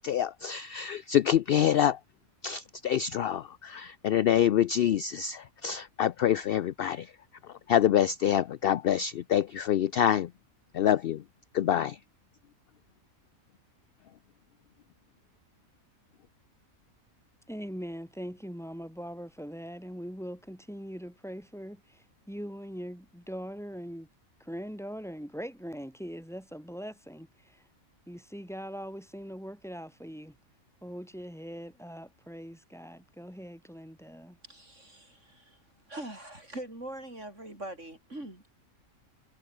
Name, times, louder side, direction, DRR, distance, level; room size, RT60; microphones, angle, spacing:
voice 1, 0.0-2.0 2.4-7.1 7.7-10.3 10.7-11.2 11.5-12.0, left 10 dB, 70° left, 0.5 m, -26 dB
voice 2, 17.5-24.1 24.4-27.6 28.1-30.3 30.8-34.4, equal, ahead, 6.9 m, -41 dB
voice 3, 34.5-35.6 35.9-38.5, right 1 dB, 55° right, 8.3 m, -42 dB
omnidirectional pair, 1.5 m